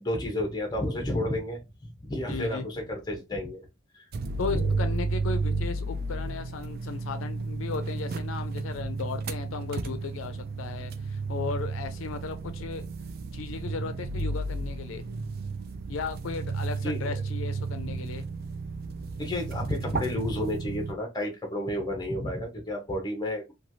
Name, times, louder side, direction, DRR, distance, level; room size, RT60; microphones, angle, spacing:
voice 1, 0.0-3.7 3.9-4.0 4.3-4.7 16.8-17.2 17.7-18.0 19.2-23.5, left 1 dB, 20° left, 0.7 m, -31 dB
voice 2, 2.2-2.7 4.4-12.9 13.3-15.0 15.9-18.2, left 4 dB, 80° left, 0.4 m, -36 dB
sound 1, 4.1-20.9, right 3 dB, 50° right, 0.3 m, -33 dB
3.0 x 2.3 x 2.6 m
head